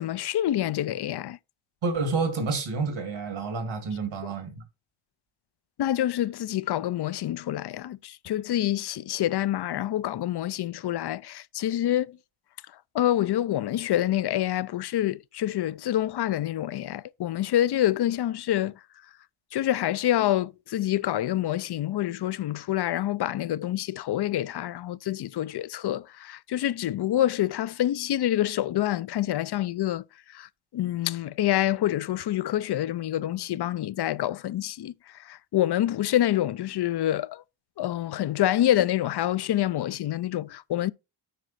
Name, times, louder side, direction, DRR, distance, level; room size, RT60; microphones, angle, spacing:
voice 1, 0.0-1.4 5.8-12.2 12.9-18.8 19.5-37.4 37.8-40.9, left 12 dB, 60° left, 0.5 m, -27 dB
voice 2, 1.8-4.6, right 4 dB, 85° right, 2.2 m, -29 dB
9.4 x 4.9 x 4.1 m
cardioid pair, 70°, 46 cm